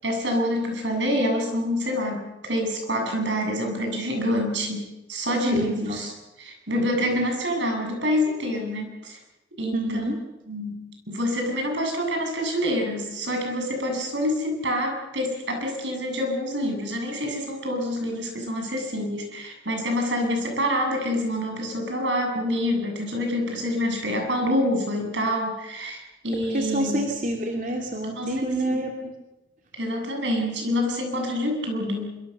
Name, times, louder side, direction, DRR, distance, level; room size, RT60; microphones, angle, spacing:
voice 1, 0.0-6.1 6.4-9.2 9.6-10.0 10.5-27.1 28.2-28.8 29.8-32.2, equal, 80° right, 3 dB, 7.8 m, -27 dB
voice 2, 5.5-6.0 7.0-7.3 9.7-10.2 26.5-29.1, right 1 dB, 45° right, 1 dB, 2.8 m, -27 dB
25.5 x 24.5 x 6.8 m, 0.98 s
head